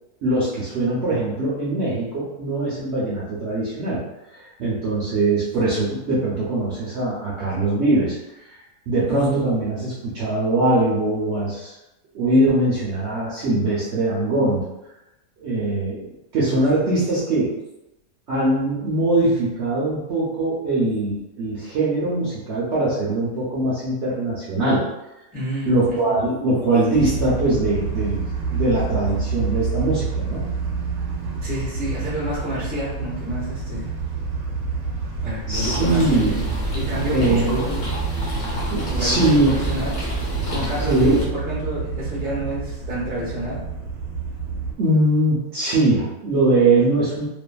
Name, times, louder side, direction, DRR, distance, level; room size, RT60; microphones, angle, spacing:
voice 1, 0.2-4.0 4.3-8.2 8.9-11.7 12.1-14.7 15.4-17.5 18.3-24.8 25.6-30.5 35.5-36.4 37.1-37.6 38.7-39.5 40.9-41.2 44.8-47.3, right 2 dB, 60° right, -8 dB, 0.8 m, -21 dB
voice 2, 25.3-26.1 31.4-34.0 35.2-36.4 36.7-37.9 38.9-39.9 40.5-43.6, right 1 dB, 10° right, -7 dB, 0.6 m, -29 dB
sound 1, 26.9-44.8, right 4 dB, 85° right, 1.1 m, -29 dB
sound 2, 35.5-41.2, right 1 dB, 55° left, 1.0 m, -27 dB
2.6 x 2.5 x 2.2 m, 0.95 s
omnidirectional pair, 1.6 m